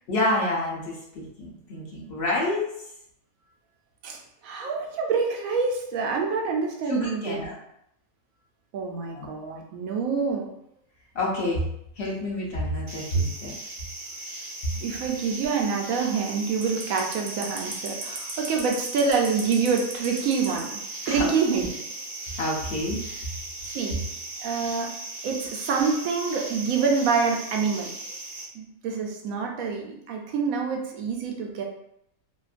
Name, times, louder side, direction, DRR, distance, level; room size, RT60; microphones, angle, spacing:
voice 1, 0.1-2.7 6.9-7.5 9.1-9.3 11.1-11.6 12.0-13.5 21.1-21.7 22.4-23.0, left 1 dB, 55° left, -4 dB, 0.9 m, -28 dB
voice 2, 4.0-7.4 8.7-10.5 14.8-21.7 23.7-24.0 24.4-24.9 25.2-27.9 28.5-31.6, right 5 dB, 80° right, 1 dB, 1.0 m, -26 dB
sound 1, 12.9-28.4, right 2 dB, 60° right, 0.6 m, -37 dB
2.8 x 2.5 x 2.4 m, 0.75 s
omnidirectional pair, 1.4 m